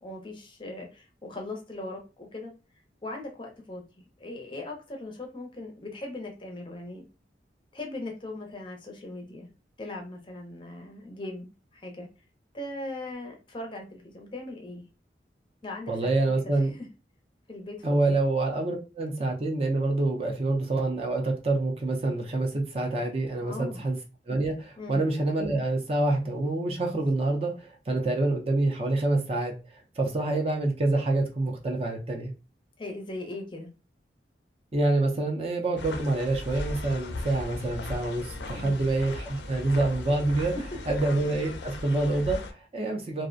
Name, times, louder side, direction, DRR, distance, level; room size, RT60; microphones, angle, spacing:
voice 1, 0.0-2.5 3.0-7.1 7.7-9.5 9.8-12.1 12.5-14.8 15.6-16.9 17.5-18.2 23.4-23.8 24.8-25.0 32.8-33.7 38.5-38.8 40.5-40.6, left 2 dB, 25° left, 2 dB, 0.5 m, -39 dB
voice 2, 15.9-16.7 17.8-24.0 24.3-32.3 34.7-40.6 40.9-43.3, right 2 dB, 35° right, 1 dB, 0.4 m, -27 dB
sound 1, 35.8-42.5, left 2 dB, 80° left, 0.4 m, -37 dB
2.4 x 2.0 x 2.5 m, 0.30 s
head